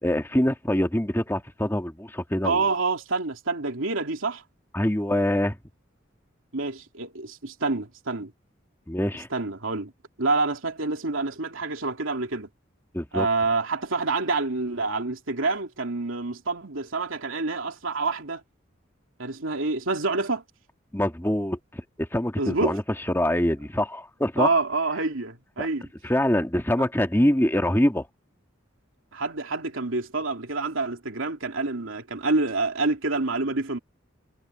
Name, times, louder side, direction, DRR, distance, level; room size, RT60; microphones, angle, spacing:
voice 1, 0.0-2.6 4.7-5.6 8.9-9.3 12.9-13.3 20.9-22.8 23.1-24.5 25.6-25.7 26.0-28.1, left 1 dB, 10° left, 1.6 m, -24 dB
voice 2, 2.4-4.4 6.5-8.3 9.3-9.9 10.2-12.5 13.1-18.4 19.2-20.4 22.4-22.8 24.4-25.9 29.1-33.8, right 3 dB, 85° right, 2.8 m, -27 dB
head